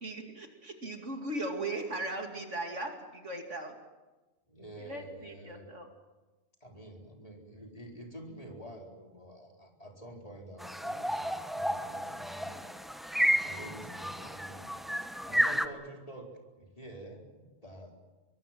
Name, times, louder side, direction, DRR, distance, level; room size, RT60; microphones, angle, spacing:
voice 1, 0.0-3.7 4.8-5.9 13.1-13.7 15.4-15.6, right 2 dB, 60° right, 3 dB, 2.9 m, -38 dB
voice 2, 4.5-5.6 6.6-12.6 13.4-14.7 15.2-16.3 16.6-18.1, right 1 dB, 25° left, 0 dB, 4.5 m, -48 dB
sound 1, 10.6-15.7, equal, ahead, 0.9 m, -32 dB
25.0 x 23.0 x 7.6 m, 1.2 s
omnidirectional pair, 1.4 m